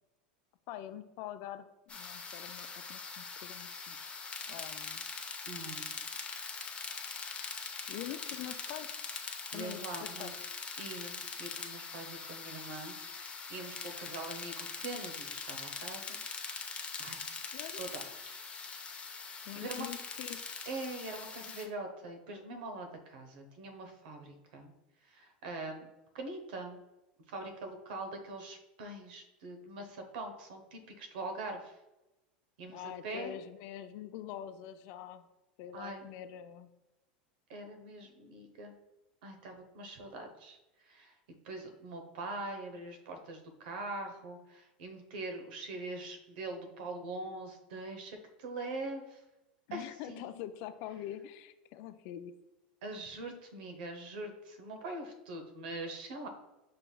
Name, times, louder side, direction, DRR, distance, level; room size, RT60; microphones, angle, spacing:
voice 1, 0.7-4.0 4.5-5.1 7.9-9.0 9.5-10.3 17.5-17.9 19.5-20.7 32.7-35.3 35.6-36.7 49.7-52.3, left 11 dB, 60° left, 11 dB, 0.4 m, -45 dB
sound 1, 1.9-21.6, left 5 dB, 25° left, 0.6 m, -42 dB
voice 2, 5.5-5.9 9.5-10.4 10.8-16.2 17.0-18.4 19.5-19.9 20.6-24.7 25.0-25.8 26.1-26.8 27.3-31.8 32.6-33.4 35.7-36.0 37.5-38.7 39.2-41.2 41.4-49.2 49.7-50.4 52.8-56.3, right 2 dB, 75° right, 5 dB, 0.8 m, -43 dB
5.7 x 3.2 x 2.3 m, 1.0 s
hypercardioid pair, 110°, 5 cm